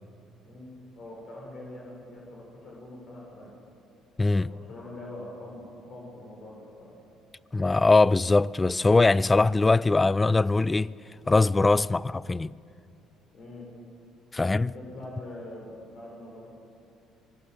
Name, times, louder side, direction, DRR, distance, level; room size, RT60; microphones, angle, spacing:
voice 1, 0.4-3.5 4.2-6.9 13.3-13.7 14.4-16.4, left 1 dB, 55° left, 6.8 m, -44 dB
voice 2, 4.2-4.5 7.5-10.9 11.3-12.5 14.3-14.7, left 3 dB, 20° left, 0.5 m, -21 dB
26.5 x 21.5 x 8.0 m
supercardioid pair, 85°, 0 cm